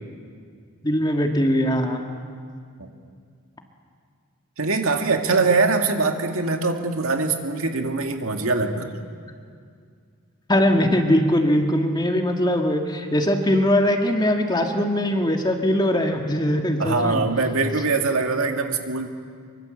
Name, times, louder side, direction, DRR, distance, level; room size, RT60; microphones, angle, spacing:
voice 1, 0.8-2.0 10.5-17.2, left 1 dB, 20° left, 3 dB, 2.0 m, -21 dB
voice 2, 4.6-8.9 16.8-19.1, right 3 dB, 70° right, 4 dB, 2.2 m, -23 dB
24.5 x 24.0 x 7.8 m, 2.2 s
head